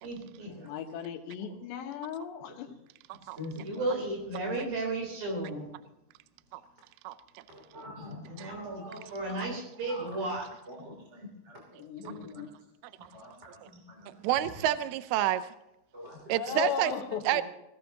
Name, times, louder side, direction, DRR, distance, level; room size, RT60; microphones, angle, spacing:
voice 1, 0.0-0.7 3.6-5.7 8.3-10.5, right 2 dB, 55° right, 2 dB, 5.5 m, -34 dB
voice 2, 0.6-2.7 11.8-12.5 16.3-17.4, left 8 dB, 85° left, 6 dB, 3.4 m, -36 dB
voice 3, 3.2-3.9 7.5-9.4 9.8-10.3 10.7-12.5 13.0-14.6 15.9-16.6, left 2 dB, 20° right, -1 dB, 2.6 m, -46 dB
voice 4, 14.2-15.5 16.3-16.9 17.3-17.4, right 12 dB, 80° right, 12 dB, 2.4 m, -28 dB
21.0 x 17.0 x 2.9 m, 0.91 s
omnidirectional pair, 4.8 m